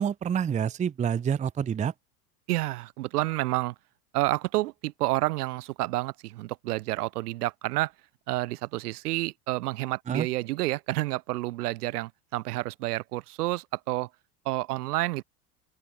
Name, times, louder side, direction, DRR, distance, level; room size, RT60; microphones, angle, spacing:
voice 1, 0.0-1.9 10.1-10.3, right 8 dB, 15° right, 0.6 m, -27 dB
voice 2, 2.5-3.7 4.1-7.9 8.3-14.1 14.5-15.2, right 18 dB, 85° right, 1.8 m, -29 dB
open air
supercardioid pair, 115°, 45 cm